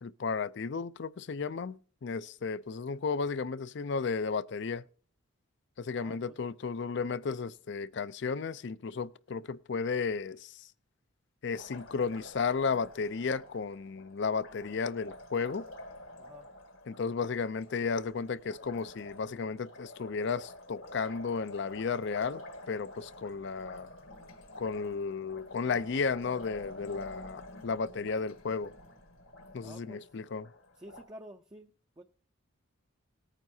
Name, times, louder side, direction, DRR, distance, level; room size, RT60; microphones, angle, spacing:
voice 1, 0.0-4.8 5.8-10.6 11.4-15.7 16.9-23.9 24.6-28.7 29.5-30.5, left 5 dB, 55° left, 0.4 m, -34 dB
voice 2, 5.9-6.4 16.2-16.5 29.6-30.0 30.8-32.0, right 1 dB, 20° right, 0.5 m, -50 dB
Liquid, 11.5-31.0, left 1 dB, 75° left, 1.7 m, -49 dB
18.5 x 9.1 x 2.7 m
head